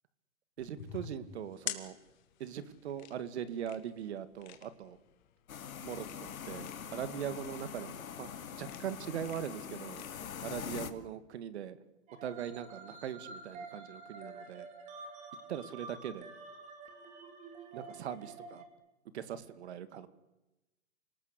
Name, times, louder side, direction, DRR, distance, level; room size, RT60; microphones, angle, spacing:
sound 1, 0.6-10.9, left 11 dB, 35° left, 2.5 m, -48 dB
voice 1, 0.6-2.0 2.4-5.0 5.8-10.0 10.4-11.8 12.2-14.7 15.5-16.3 17.7-18.6 19.1-20.1, right 9 dB, 50° right, 14 dB, 2.3 m, -41 dB
sound 2, 5.5-10.9, left 8 dB, 85° left, 2.7 m, -43 dB
sound 3, 12.1-18.7, right 3 dB, 15° right, 3.3 m, -49 dB
28.5 x 19.5 x 8.3 m, 0.99 s
hypercardioid pair, 160°, 41 cm